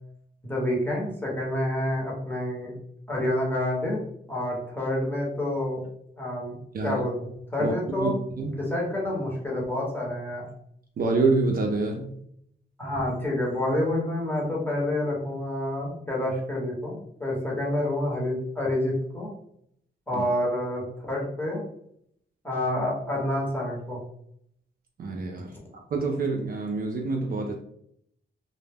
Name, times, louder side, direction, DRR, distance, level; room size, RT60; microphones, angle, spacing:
voice 1, 0.4-2.7 3.1-4.0 4.3-5.8 6.2-6.5 6.8-8.2 8.4-10.4 12.8-19.3 20.1-21.6 22.4-24.0, left 1 dB, 10° left, -4 dB, 0.9 m, -28 dB
voice 2, 7.6-8.5 11.0-12.1 20.1-20.3 25.0-27.5, right 3 dB, 50° right, 1 dB, 0.4 m, -27 dB
2.0 x 2.0 x 3.4 m, 0.71 s
cardioid pair, 115°, 20 cm